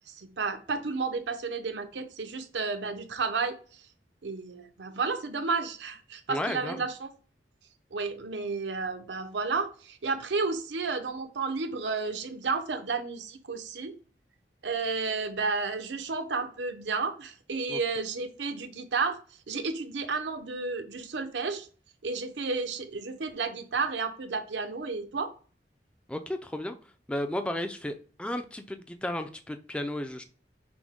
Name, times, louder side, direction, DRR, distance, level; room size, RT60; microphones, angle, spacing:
voice 1, 0.1-3.8 4.2-7.1 7.9-14.0 14.6-19.2 19.5-21.7 22.0-25.3, right 4 dB, 85° right, 7 dB, 0.7 m, -32 dB
voice 2, 6.3-6.8 17.7-17.8 26.1-26.8 27.1-30.2, left 1 dB, 5° left, 7 dB, 0.3 m, -33 dB
6.0 x 2.1 x 3.6 m, 0.39 s
head